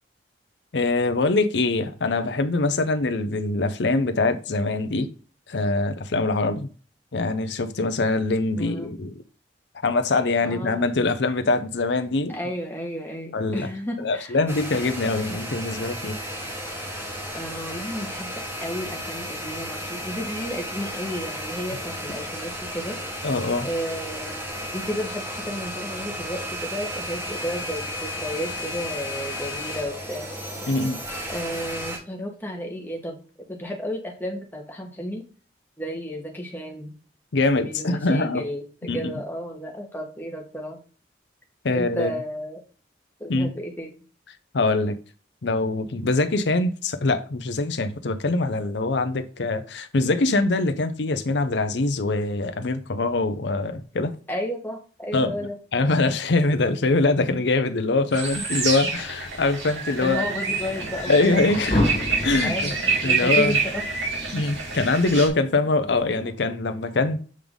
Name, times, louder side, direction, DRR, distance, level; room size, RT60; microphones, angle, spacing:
voice 1, 0.7-5.1 5.5-6.7 7.1-9.1 9.8-12.3 13.3-13.7 14.0-16.2 23.2-23.7 30.7-31.0 37.3-38.5 38.9-39.1 41.6-42.1 43.3-43.5 44.5-45.0 45.4-54.2 55.1-60.3 61.1-61.9 62.2-62.8 63.0-63.6 64.3-67.2, left 3 dB, 70° left, 0.6 m, -23 dB
voice 2, 8.6-8.9 10.4-10.8 12.3-14.4 17.3-18.3 18.6-23.0 23.6-24.5 24.7-30.3 31.3-33.2 33.5-35.2 35.8-36.9 37.6-40.8 41.7-42.6 43.2-43.9 54.3-55.6 60.0-61.3 62.4-63.8, equal, 10° left, 1.2 m, -32 dB
sound 1, 14.5-32.0, equal, 15° right, 1.1 m, -33 dB
sound 2, 58.1-65.3, right 4 dB, 90° right, 2.3 m, -27 dB
sound 3, 60.3-66.4, left 1 dB, 35° left, 1.6 m, -31 dB
7.5 x 3.5 x 3.7 m
head